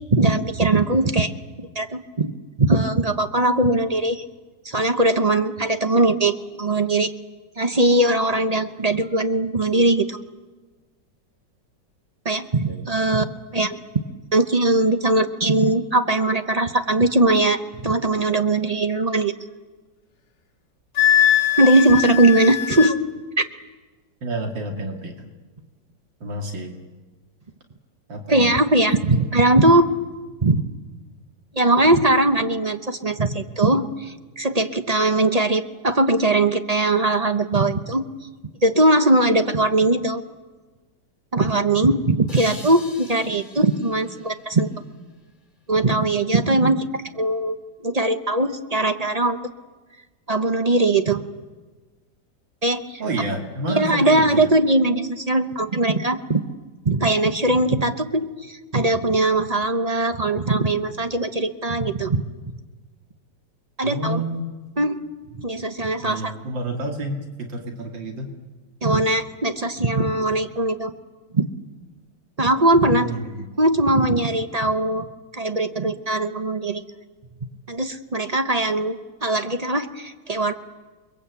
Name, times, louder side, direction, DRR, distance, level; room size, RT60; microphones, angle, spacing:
voice 1, 0.1-1.3 1.6-2.3 2.6-4.2 4.6-7.1 7.6-10.2 12.2-13.2 13.5-13.8 14.3-17.6 17.8-19.3 21.6-22.9 28.3-29.9 30.4-30.6 31.5-38.1 38.6-40.2 41.3-44.7 45.7-47.6 47.8-49.4 50.3-51.2 52.6-53.0 53.8-56.5 56.8-62.2 63.8-64.2 64.8-65.0 65.4-66.3 68.8-70.9 71.3-71.5 72.4-73.1 73.6-75.1 75.3-76.8 77.7-80.5, right 2 dB, 30° right, 8 dB, 0.8 m, -20 dB
voice 2, 12.6-13.0 24.2-25.3 26.2-26.7 28.1-28.6 53.0-54.5 63.8-64.5 66.0-68.4 72.8-73.5, right 1 dB, 80° right, 3 dB, 3.0 m, -29 dB
Wind instrument woodwind instrument, 21.0-23.0, left 11 dB, 60° left, 2.2 m, -20 dB
sound 1, 42.3-45.4, left 2 dB, 25° left, 2.7 m, -44 dB
28.5 x 22.0 x 8.3 m, 1.3 s
omnidirectional pair, 2.0 m